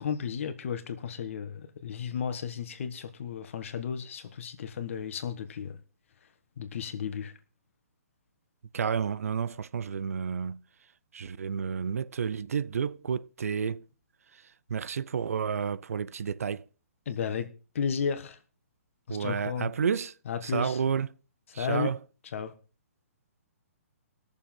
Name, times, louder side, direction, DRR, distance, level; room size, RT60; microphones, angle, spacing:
voice 1, 0.0-5.8 6.6-7.3 17.0-17.5 17.7-18.4 19.1-19.7 20.3-20.8 21.6-21.9 22.3-22.5, left 7 dB, 60° left, 1.5 m, -33 dB
voice 2, 8.7-10.6 11.1-13.9 14.3-16.7 19.1-20.1 20.4-21.1 21.5-22.0, right 7 dB, 75° right, 0.5 m, -31 dB
20.5 x 6.9 x 3.7 m
hypercardioid pair, 140°, 8 cm